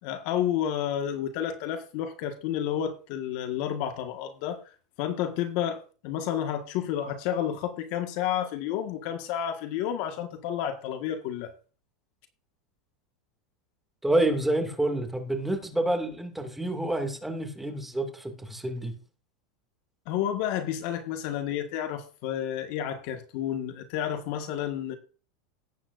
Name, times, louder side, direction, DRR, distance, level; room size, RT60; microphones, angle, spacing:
voice 1, 0.0-4.6 5.0-11.5 20.0-25.0, left 10 dB, 60° left, 1.7 m, -30 dB
voice 2, 14.0-18.9, right 1 dB, 5° right, 2.4 m, -28 dB
18.0 x 8.6 x 2.6 m
supercardioid pair, 115°, 4 cm